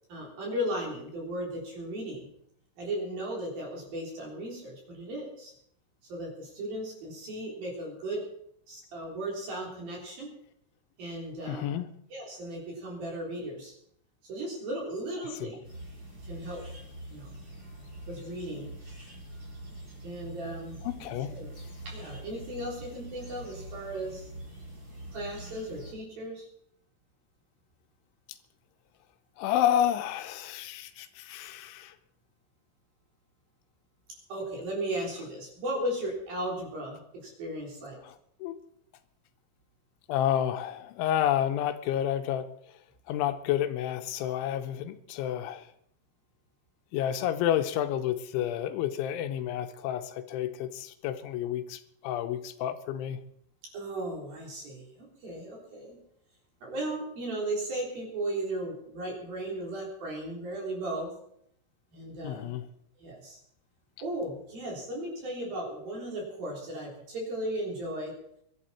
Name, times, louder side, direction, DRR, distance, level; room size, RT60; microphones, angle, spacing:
voice 1, 0.1-2.3 2.8-5.5 6.0-8.3 8.7-10.3 11.0-11.7 12.1-13.7 14.3-15.6 16.2-16.6 17.1-17.3 18.1-18.8 20.0-21.5 21.9-24.3 25.1-26.5 34.3-38.0 53.7-56.0 56.6-61.1 61.9-62.6 63.0-63.4 64.0-68.2, right 1 dB, 50° right, -2 dB, 5.3 m, -36 dB
voice 2, 11.5-11.9 15.4-15.5 20.8-21.4 29.4-31.9 38.0-38.2 38.4-38.6 40.1-42.5 43.1-45.7 46.9-53.2 62.2-62.7, left 11 dB, 80° left, 8 dB, 3.2 m, -30 dB
sound 1, 15.6-25.9, right 1 dB, 20° right, 5.5 m, -44 dB
22.5 x 11.5 x 4.4 m, 0.70 s
omnidirectional pair, 5.5 m